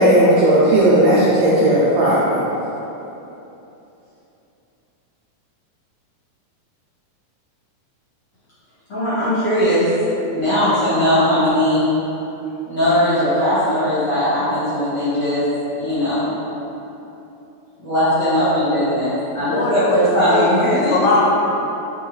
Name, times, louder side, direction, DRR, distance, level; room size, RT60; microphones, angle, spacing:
voice 1, 0.0-2.4, right 1 dB, 80° right, -8 dB, 1.6 m, -14 dB
voice 2, 8.9-9.9 10.3-11.8 12.6-15.4 15.8-16.3 17.8-21.0, equal, 50° left, -13 dB, 1.4 m, -19 dB
voice 3, 19.5-20.0 20.3-21.3, left 3 dB, 80° left, -3 dB, 2.0 m, -20 dB
4.7 x 3.5 x 3.1 m, 3.0 s
omnidirectional pair, 3.7 m